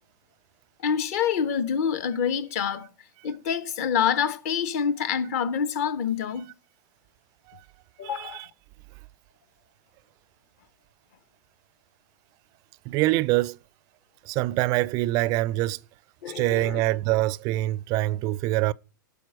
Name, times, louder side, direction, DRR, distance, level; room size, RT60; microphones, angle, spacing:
voice 1, 0.8-2.9 3.2-6.5 8.0-8.4 16.2-16.8, left 7 dB, 50° left, 1.0 m, -26 dB
voice 2, 8.0-8.5 12.8-13.6 14.2-15.8 16.3-18.7, right 17 dB, 35° right, 0.4 m, -25 dB
12.0 x 4.5 x 4.9 m
figure-of-eight pair, 105°, 11 cm